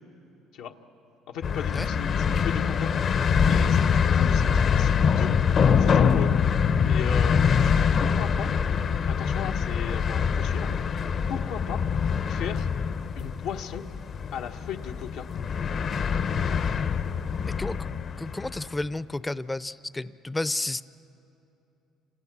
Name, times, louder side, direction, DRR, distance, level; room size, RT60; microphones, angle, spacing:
voice 1, 1.3-2.9 3.5-5.3 5.8-6.3 6.9-8.5 9.1-10.7 11.3-11.8 12.3-12.7 13.1-13.8 14.3-15.3, left 8 dB, 80° left, 2 dB, 1.3 m, -36 dB
sound 1, 1.4-18.7, left 6 dB, 50° left, 1.0 m, -24 dB
voice 2, 17.5-20.8, left 2 dB, 15° left, 15 dB, 0.7 m, -32 dB
30.0 x 27.0 x 6.2 m, 2.8 s
supercardioid pair, 90°, 0 cm